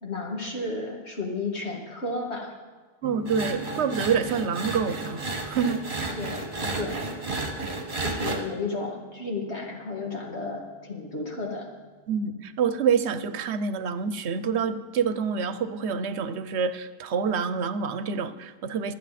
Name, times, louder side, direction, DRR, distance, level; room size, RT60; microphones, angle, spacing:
voice 1, 0.0-2.5 6.1-7.1 8.0-11.7, left 3 dB, 80° left, -1 dB, 2.5 m, -33 dB
sound 1, 3.0-12.8, right 2 dB, 10° right, 4.0 m, -47 dB
voice 2, 3.0-5.8 12.1-18.9, right 6 dB, 80° right, 12 dB, 1.0 m, -27 dB
sound 2, 3.3-8.4, right 2 dB, 50° right, 1.9 m, -32 dB
23.5 x 8.3 x 4.2 m, 1.4 s
omnidirectional pair, 1.1 m